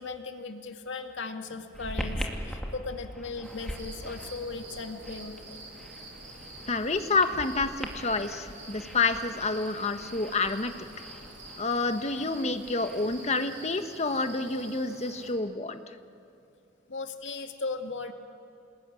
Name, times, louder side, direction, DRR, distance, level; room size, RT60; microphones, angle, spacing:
voice 1, 0.0-5.6 16.9-18.1, left 4 dB, 85° left, 5 dB, 2.1 m, -37 dB
sound 1, 1.7-13.3, equal, ahead, 2.6 m, -42 dB
sound 2, 3.4-15.3, right 2 dB, 85° right, 5.8 m, -47 dB
voice 2, 6.7-10.7 11.6-15.8, left 3 dB, 40° left, 8 dB, 1.3 m, -28 dB
28.0 x 20.5 x 9.8 m, 2.6 s
head